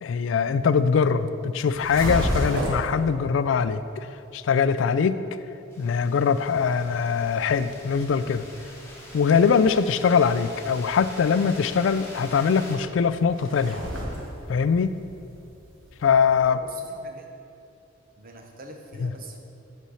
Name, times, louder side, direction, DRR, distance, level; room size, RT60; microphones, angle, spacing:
voice 1, 0.0-4.1 4.3-5.2 5.8-8.4 9.1-13.8 14.5-14.9 16.0-16.6 19.0-19.1, left 6 dB, 70° left, 13 dB, 0.3 m, -22 dB
sound 1, 1.6-2.9 6.4-16.5, equal, 80° right, 1.4 m, -35 dB
sound 2, 5.7-12.8, left 1 dB, 15° left, 1.4 m, -44 dB
voice 2, 16.4-17.3 18.2-19.4, right 2 dB, 45° right, 2 dB, 0.9 m, -43 dB
8.3 x 4.3 x 6.3 m, 2.7 s
head